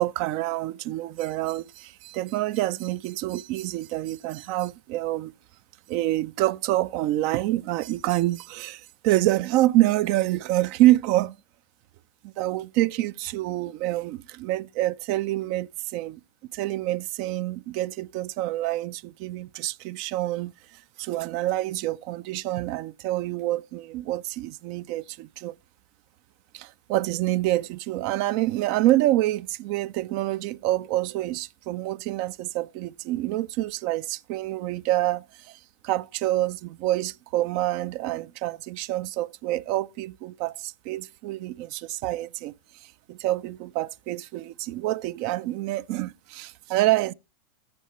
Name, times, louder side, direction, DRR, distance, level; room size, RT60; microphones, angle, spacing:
voice 1, 0.0-5.3 5.9-11.4 12.2-16.2 16.5-25.5 26.5-42.5 42.8-47.1, right 16 dB, 55° right, 0.3 m, -27 dB
15.0 x 5.5 x 3.0 m
hypercardioid pair, 95°, 0 cm